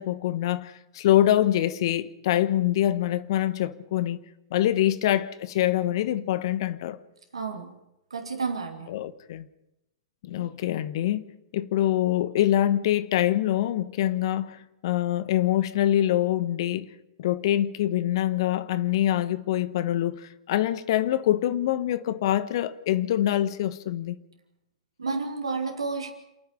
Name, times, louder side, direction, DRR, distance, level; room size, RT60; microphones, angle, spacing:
voice 1, 0.0-4.2 4.5-7.0 8.9-9.5 10.2-11.2 11.5-14.6 14.8-16.9 17.2-24.2, left 12 dB, 55° left, 1.2 m, -25 dB
voice 2, 7.3-7.8 8.1-8.9 25.0-26.1, right 4 dB, 85° right, 2.6 m, -31 dB
28.0 x 9.6 x 9.9 m
hypercardioid pair, 110°, 3 cm